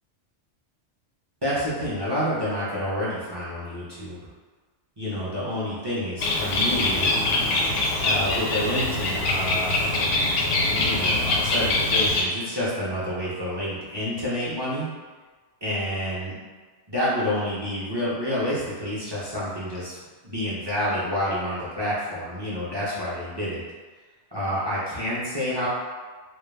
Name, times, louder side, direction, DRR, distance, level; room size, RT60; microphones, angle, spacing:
voice 1, 1.4-4.2 5.0-7.1 8.0-9.9 10.8-14.9 15.6-16.3 16.9-20.0 20.2-23.6 24.3-25.7, left 1 dB, 30° right, -9 dB, 0.5 m, -28 dB
Bird, 6.2-12.2, left 2 dB, 90° left, 0.9 m, -23 dB
2.3 x 2.1 x 3.3 m, 1.4 s
omnidirectional pair, 1.2 m